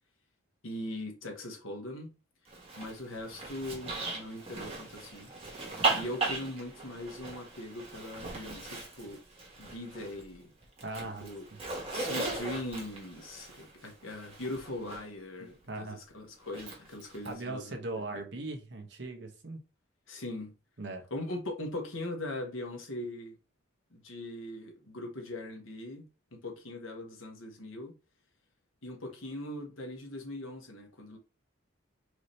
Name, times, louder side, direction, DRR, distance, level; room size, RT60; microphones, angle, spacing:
voice 1, 0.6-2.1 2.8-5.3 5.9-9.2 9.6-10.5 10.9-11.5 11.9-18.2 20.1-20.5 21.1-23.3 23.9-26.0 26.3-27.9 28.8-31.2, left 1 dB, 85° left, 1.3 m, -40 dB
Zipper (clothing), 2.5-10.3 10.6-15.0 16.5-17.3, right 3 dB, 30° right, 1.4 m, -37 dB
voice 2, 10.8-11.6 15.7-16.0 17.2-19.6 20.8-21.0, right 2 dB, 60° right, 1.0 m, -39 dB
4.8 x 2.8 x 3.2 m
head